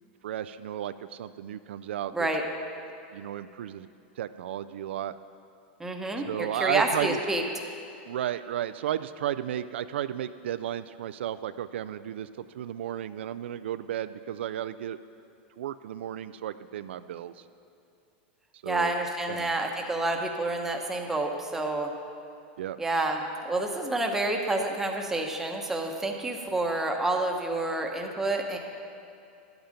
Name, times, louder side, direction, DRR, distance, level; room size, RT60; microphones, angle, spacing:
voice 1, 0.2-2.3 3.1-3.9 4.2-5.2 6.2-7.2 8.1-15.0 15.6-17.3 18.6-18.9 19.3-19.5 22.6-22.8, right 11 dB, 85° right, 12 dB, 0.3 m, -33 dB
voice 2, 5.8-7.4 18.6-21.9 22.8-28.6, right 2 dB, 5° right, 2 dB, 0.9 m, -29 dB
11.5 x 8.0 x 5.2 m, 2.6 s
supercardioid pair, 140°, 6 cm